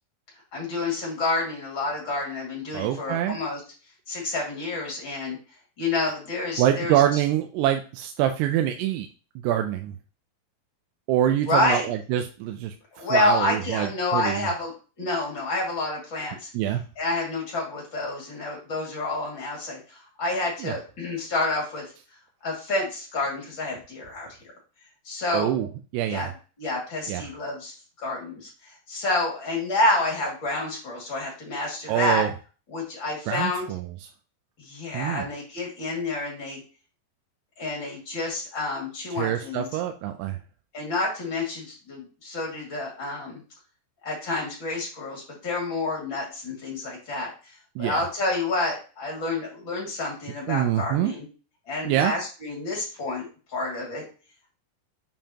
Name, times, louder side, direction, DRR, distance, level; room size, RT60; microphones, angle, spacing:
voice 1, 0.5-3.6 4.1-5.4 5.8-7.0 11.5-11.9 12.9-16.5 17.0-21.8 22.4-24.3 25.0-25.5 26.1-26.3 26.6-32.2 32.7-33.7 34.6-36.6 37.6-39.7 40.7-43.4 44.0-47.3 47.8-51.2 51.7-53.2 53.5-54.0, left 2 dB, 35° left, -2 dB, 2.2 m, -28 dB
voice 2, 2.7-3.4 6.6-9.1 9.4-10.0 11.1-14.5 16.5-16.8 20.6-20.8 25.3-25.7 25.9-26.3 27.1-27.2 31.9-32.3 33.3-33.9 34.9-35.3 39.1-40.4 47.8-48.0 50.5-51.1 51.9-52.1, right 11 dB, 85° right, 6 dB, 2.7 m, -25 dB
7.3 x 5.4 x 2.9 m, 0.35 s
omnidirectional pair, 4.8 m